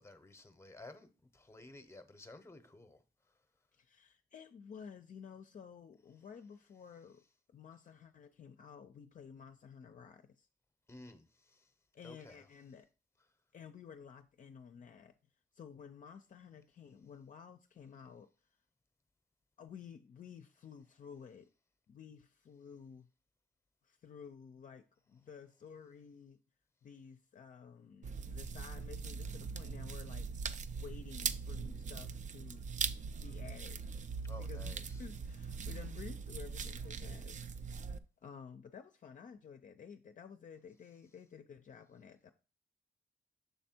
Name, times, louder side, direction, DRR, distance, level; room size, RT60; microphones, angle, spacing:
voice 1, 0.0-3.0 10.9-11.7 12.0-12.5 34.2-35.0, left 2 dB, 15° left, 0.8 m, -54 dB
voice 2, 3.7-7.2 7.5-10.5 11.9-12.9 13.5-15.1 15.5-18.3 19.6-21.5 21.9-23.1 23.8-26.4 26.8-30.3 30.7-32.7 33.2-33.8 34.4-37.4 38.2-42.3, left 7 dB, 50° left, 0.5 m, -53 dB
sound 1, 28.0-38.0, right 5 dB, 45° right, 0.4 m, -41 dB
6.8 x 3.3 x 4.3 m
cardioid pair, 85°, 18 cm